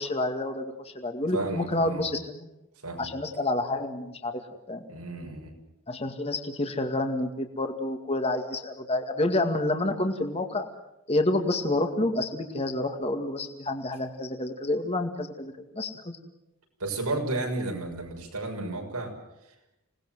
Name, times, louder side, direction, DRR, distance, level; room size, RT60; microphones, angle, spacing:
voice 1, 0.0-2.5 3.0-4.3 4.7-4.9 5.9-10.7 11.1-15.9, left 2 dB, 25° left, 5 dB, 2.2 m, -28 dB
voice 2, 1.3-2.0 2.8-3.1 4.9-5.5 16.8-19.1, right 2 dB, 90° right, 2 dB, 6.7 m, -32 dB
27.0 x 19.5 x 8.0 m, 0.90 s
head